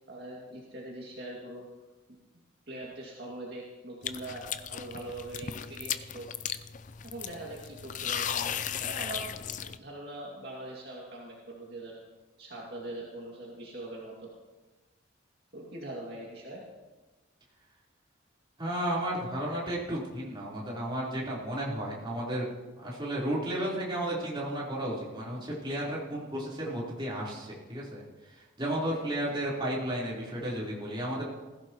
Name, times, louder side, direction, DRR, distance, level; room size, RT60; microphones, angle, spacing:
voice 1, 0.1-1.6 2.7-6.2 7.0-12.0 12.4-14.3 15.5-16.6, right 1 dB, 50° right, -4 dB, 2.3 m, -42 dB
sound 1, 4.0-9.8, left 9 dB, 40° left, 0.4 m, -36 dB
voice 2, 18.6-22.5 22.8-31.4, right 1 dB, 25° right, -6 dB, 3.9 m, -33 dB
20.0 x 15.5 x 3.1 m, 1.2 s
head